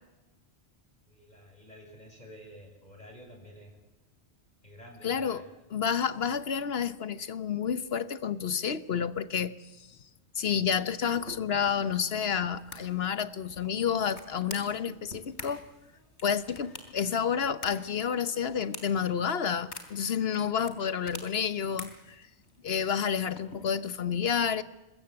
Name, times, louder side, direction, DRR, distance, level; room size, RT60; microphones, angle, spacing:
voice 1, 1.1-3.7 4.6-5.4, equal, 40° left, 1 dB, 6.4 m, -50 dB
voice 2, 5.0-5.4 5.7-9.5 10.3-15.7 16.2-22.2 22.6-24.6, left 7 dB, 65° left, 14 dB, 1.2 m, -30 dB
sound 1, 11.2-24.0, left 2 dB, 85° left, 3.4 m, -48 dB
25.0 x 21.0 x 7.8 m, 1.1 s
omnidirectional pair, 1.1 m